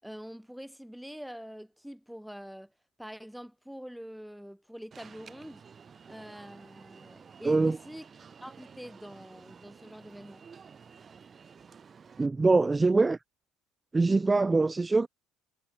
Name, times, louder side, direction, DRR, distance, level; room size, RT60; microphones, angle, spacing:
voice 1, 0.0-2.7 3.0-5.7 6.1-8.1 8.4-10.5, equal, ahead, 6.0 m, -45 dB
Alarm, 4.9-12.3, right 6 dB, 35° right, 7.0 m, -52 dB
voice 2, 7.4-7.8 12.2-13.2 13.9-15.1, right 3 dB, 20° right, 0.7 m, -23 dB
hypercardioid pair, 70°, 0 cm